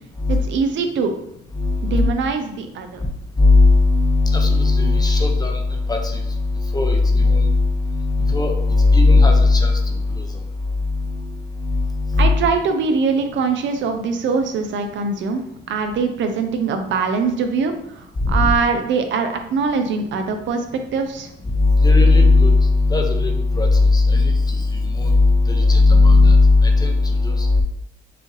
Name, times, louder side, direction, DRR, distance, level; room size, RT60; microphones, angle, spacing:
voice 1, 0.3-1.1 1.9-3.0 12.2-15.4 15.7-20.6 20.9-21.3, right 5 dB, 70° right, 6 dB, 0.6 m, -22 dB
voice 2, 1.6-2.1 3.4-10.2 10.9-11.3 11.6-12.4 18.2-18.5 21.5-24.6 24.9-27.6, left 3 dB, 20° left, 3 dB, 0.7 m, -16 dB
4.8 x 2.5 x 3.2 m, 0.77 s
cardioid pair, 90°, 20 cm